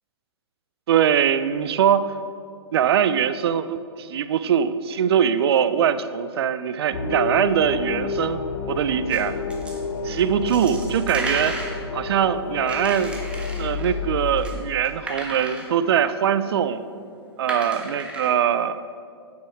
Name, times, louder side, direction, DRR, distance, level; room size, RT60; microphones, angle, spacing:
voice 1, 0.9-2.1 2.7-8.4 8.7-9.4 10.0-11.6 11.9-13.3 13.6-16.8 17.4-18.8, right 8 dB, 65° right, 13 dB, 0.5 m, -22 dB
sound 1, 6.9-14.4, left 4 dB, 70° left, 1.0 m, -30 dB
sound 2, 9.1-9.2 9.5-9.8 10.1-11.8 12.4-15.7 16.1-16.2 16.5-16.6 17.0-18.3, right 1 dB, 10° right, 1.2 m, -34 dB
9.5 x 6.9 x 4.5 m, 2.3 s
hypercardioid pair, 125°, 14 cm